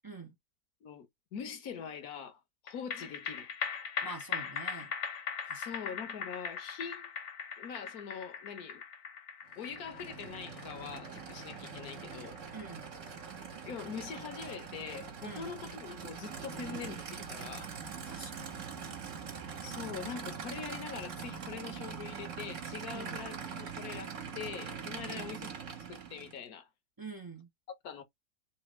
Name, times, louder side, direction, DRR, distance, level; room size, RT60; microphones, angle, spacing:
voice 1, 0.0-0.3 4.0-4.9 5.5-5.7 12.5-12.9 15.2-15.5 18.0-18.5 22.9-23.2 25.0-25.4 27.0-27.5, right 3 dB, 25° right, 0.5 m, -46 dB
voice 2, 0.8-3.5 5.5-7.1 7.6-8.8 9.6-12.4 13.6-17.7 19.6-25.6 25.9-26.7 27.8-28.0, left 7 dB, 65° left, 1.3 m, -43 dB
sound 1, 2.7-15.3 15.7-15.8, left 6 dB, 85° left, 1.4 m, -41 dB
Aircraft / Idling, 9.5-26.4, right 6 dB, 55° right, 1.3 m, -43 dB
3.4 x 2.6 x 3.0 m
omnidirectional pair, 1.7 m